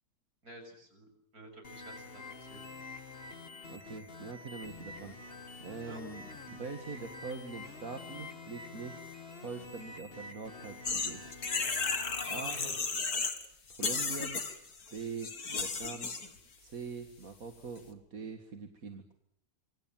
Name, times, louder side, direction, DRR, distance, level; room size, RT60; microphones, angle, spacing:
voice 1, 0.4-1.1 1.3-2.6 3.1-3.3 5.3-5.4 5.9-6.0 12.3-12.8, right 2 dB, 80° right, 6 dB, 7.6 m, -50 dB
sound 1, 1.6-12.3, left 3 dB, 40° left, 2.4 m, -47 dB
voice 2, 3.7-5.2 5.6-11.2 11.6-11.8 12.3-12.6 13.7-14.4 14.9-16.2 16.6-19.0, right 4 dB, 65° right, 5 dB, 2.4 m, -43 dB
sound 2, 10.8-13.4 13.7-16.3, left 4 dB, 80° left, 2.8 m, -34 dB
27.0 x 25.0 x 7.4 m, 0.72 s
omnidirectional pair, 1.6 m